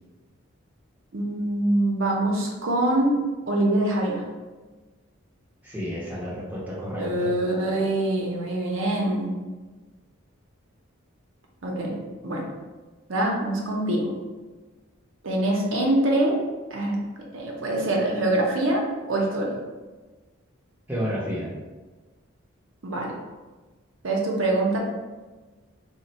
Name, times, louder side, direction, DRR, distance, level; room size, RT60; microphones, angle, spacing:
voice 1, 1.1-3.1 3.5-4.2 7.0-9.3 11.6-12.0 12.2-12.5 13.1-14.1 15.2-16.4 16.7-17.0 17.3-18.8 19.1-19.6 22.8-23.1 24.0-24.8, right 1 dB, 70° right, -1 dB, 0.7 m, -24 dB
voice 2, 5.6-7.3 20.9-21.5, equal, 10° right, -7 dB, 0.7 m, -31 dB
3.5 x 2.1 x 4.1 m, 1.3 s
head